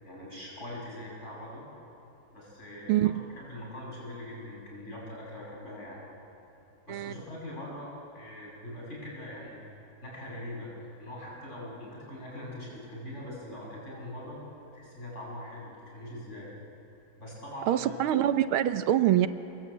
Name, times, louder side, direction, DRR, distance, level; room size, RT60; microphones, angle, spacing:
voice 1, 0.0-1.7 2.3-6.0 6.9-9.6 10.0-10.7 11.0-14.4 14.7-16.5 17.2-18.0, left 1 dB, 30° left, -4 dB, 7.5 m, -42 dB
voice 2, 17.7-19.3, right 12 dB, 80° right, 12 dB, 1.6 m, -24 dB
28.0 x 21.0 x 8.4 m, 2.9 s
omnidirectional pair, 2.3 m